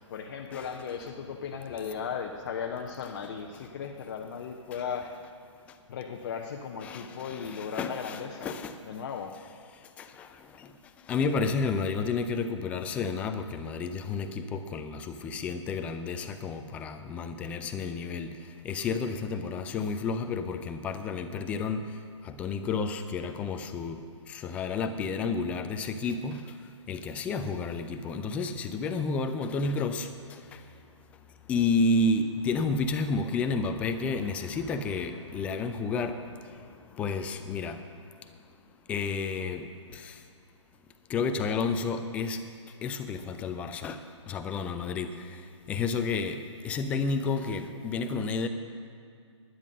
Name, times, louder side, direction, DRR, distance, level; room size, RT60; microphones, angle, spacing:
voice 1, 0.1-5.1 5.9-8.6 8.8-9.3, left 7 dB, 40° left, 2 dB, 0.7 m, -36 dB
voice 2, 6.8-8.7 10.0-10.7 11.1-18.4 18.6-21.8 22.2-26.5 26.9-30.6 31.5-36.6 37.0-37.8 38.9-39.6 39.9-40.2 41.1-42.4 42.8-44.0 44.3-45.4 45.7-48.5, left 4 dB, 10° left, 8 dB, 0.4 m, -31 dB
12.0 x 10.0 x 6.4 m, 2.4 s
figure-of-eight pair, 130°, 16 cm